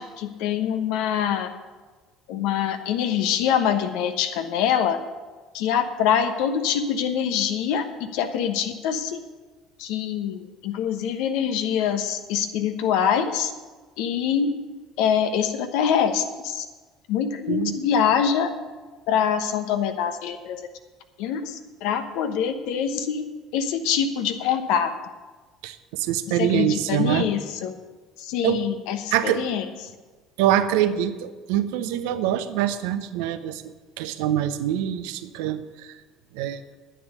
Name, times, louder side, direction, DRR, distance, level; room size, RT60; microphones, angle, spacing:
voice 1, 0.0-1.5 2.3-5.0 5.5-7.8 8.1-9.2 9.8-13.5 14.0-14.5 15.0-16.6 17.1-18.5 19.1-20.6 21.2-23.2 23.5-24.9 26.4-27.7 28.2-29.6, left 8 dB, 70° left, 8 dB, 1.1 m, -24 dB
voice 2, 25.6-27.3 28.4-28.6 29.1-29.5 30.4-33.6 34.0-36.0 36.3-36.6, right 11 dB, 75° right, 11 dB, 0.7 m, -24 dB
10.0 x 9.7 x 6.7 m, 1.3 s
hypercardioid pair, 65°, 0 cm